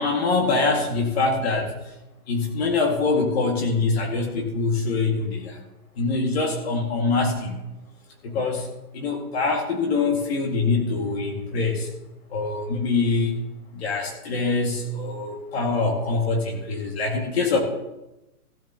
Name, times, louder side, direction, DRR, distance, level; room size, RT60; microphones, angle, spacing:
voice 1, 0.0-1.7 2.3-5.6 6.0-7.6 8.2-8.7 8.9-11.9 12.3-13.3 13.7-17.6, left 3 dB, 40° left, 2 dB, 2.0 m, -24 dB
15.5 x 11.0 x 2.9 m, 0.96 s
hypercardioid pair, 155°, 46 cm